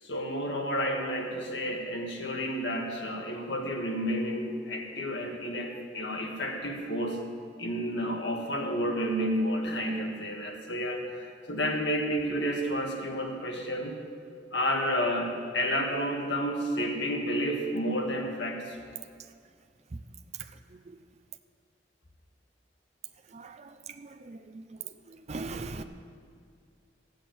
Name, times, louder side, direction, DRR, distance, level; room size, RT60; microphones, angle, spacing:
voice 1, 0.0-7.2 7.6-13.9 14.5-18.8, equal, 80° left, 1 dB, 1.8 m, -31 dB
voice 2, 23.3-23.7 24.0-24.6 25.1-25.8, right 3 dB, 40° right, 6 dB, 0.5 m, -40 dB
14.5 x 6.4 x 9.1 m, 2.1 s
head